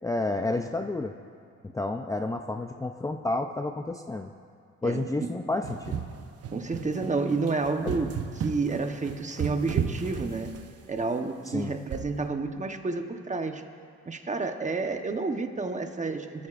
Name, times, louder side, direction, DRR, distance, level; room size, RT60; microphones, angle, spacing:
voice 1, 0.0-1.1 1.7-4.3 4.8-6.0 7.8-7.9 11.5-11.7, left 2 dB, 10° left, 5 dB, 0.5 m, -30 dB
sound 1, 5.6-11.0 11.9-12.2, right 7 dB, 50° right, 0.9 m, -34 dB
voice 2, 6.5-10.5 10.9-13.6 14.1-16.5, right 3 dB, 25° right, 6 dB, 1.1 m, -30 dB
22.5 x 14.5 x 2.5 m, 2.3 s
cardioid pair, 90°, 30 cm